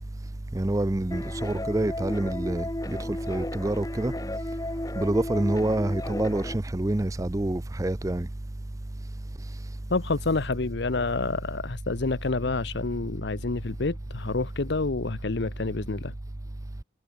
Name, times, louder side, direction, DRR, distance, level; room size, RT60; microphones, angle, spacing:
voice 1, 0.5-4.1 5.0-8.3, right 1 dB, 15° right, 0.4 m, -27 dB
sound 1, 1.1-6.5, left 1 dB, 15° left, 0.7 m, -34 dB
voice 2, 9.9-16.1, left 3 dB, 55° left, 0.7 m, -28 dB
head